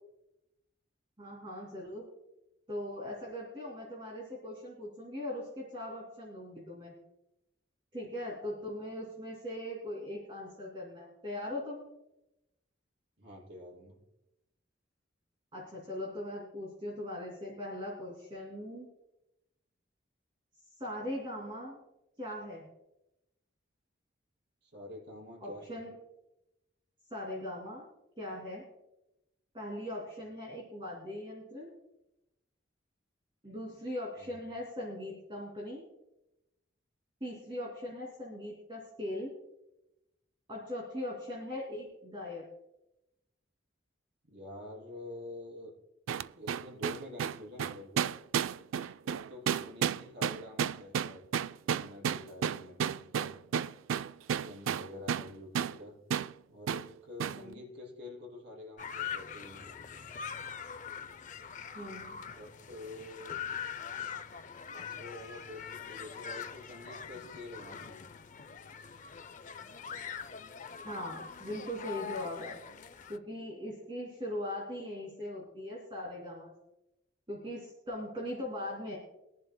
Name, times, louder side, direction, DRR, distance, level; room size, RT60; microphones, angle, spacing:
voice 1, 1.2-2.1 2.7-6.9 7.9-11.8 15.5-18.9 20.8-21.8 22.2-22.7 25.4-25.9 27.1-27.9 28.2-28.6 29.5-31.7 33.4-35.8 37.2-39.3 40.5-42.4 54.9-55.2 57.3-57.6 61.7-62.2 70.8-72.6 73.1-76.5 77.3-79.0, left 1 dB, 25° right, -3 dB, 2.6 m, -40 dB
voice 2, 13.2-14.0 24.6-25.8 34.2-34.3 44.2-45.7 46.3-48.1 49.0-51.2 51.6-53.3 54.4-55.9 56.5-59.7 62.2-63.4 64.7-68.1, left 1 dB, 60° right, -5 dB, 5.6 m, -47 dB
sound 1, 46.1-55.3 55.6-55.8 56.1-56.3 56.7-56.9 57.2-57.4, right 8 dB, 90° right, 0.3 m, -32 dB
sound 2, 58.8-73.2, left 7 dB, 40° left, 0.4 m, -43 dB
23.0 x 11.0 x 2.2 m, 0.91 s
head